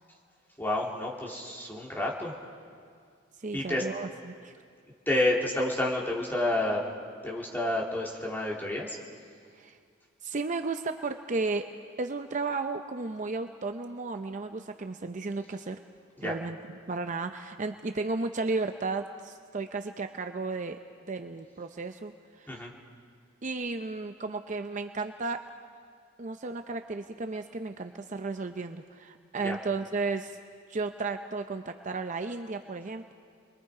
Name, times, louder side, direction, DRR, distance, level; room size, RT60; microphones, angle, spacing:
voice 1, 0.6-2.3 3.5-3.8 5.1-6.9 7.2-9.0 16.2-16.3 22.5-22.7 29.4-29.5, left 1 dB, 10° left, -3 dB, 2.8 m, -29 dB
voice 2, 3.4-4.5 9.5-9.8 10.2-11.6 12.0-15.8 16.2-20.8 21.1-22.5 23.4-25.4 26.2-30.4 30.7-33.1, right 3 dB, 40° right, 7 dB, 0.6 m, -34 dB
29.5 x 22.0 x 4.9 m, 2.1 s
head